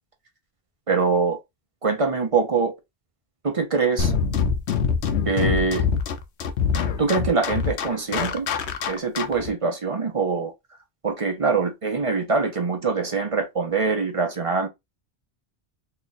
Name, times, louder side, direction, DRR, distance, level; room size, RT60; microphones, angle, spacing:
voice 1, 0.9-1.4 1.8-2.7 3.4-4.1 5.2-5.9 7.0-8.5 8.9-10.5 11.0-14.7, right 4 dB, 35° right, 0.7 m, -23 dB
sound 1, 4.0-9.5, left 6 dB, 80° left, 0.9 m, -24 dB
3.2 x 2.4 x 4.0 m
omnidirectional pair, 1.1 m